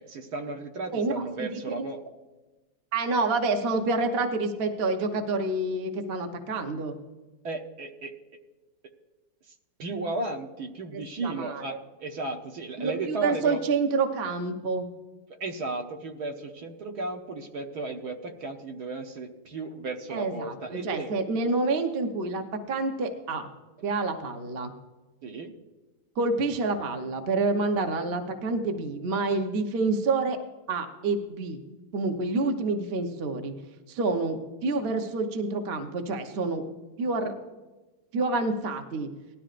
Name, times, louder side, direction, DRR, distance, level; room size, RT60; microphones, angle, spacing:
voice 1, 0.0-2.0 7.4-8.1 9.8-13.6 15.4-21.1 25.2-25.5, right 3 dB, 60° right, 3 dB, 1.4 m, -34 dB
voice 2, 0.9-1.9 2.9-6.9 10.9-11.7 12.8-14.9 20.1-23.5 23.8-24.7 26.2-30.4 30.7-31.6 31.9-33.5 33.9-36.6 37.0-37.3 38.1-39.1, right 3 dB, 40° right, 5 dB, 0.9 m, -28 dB
18.5 x 12.5 x 2.5 m, 1.2 s
omnidirectional pair, 2.0 m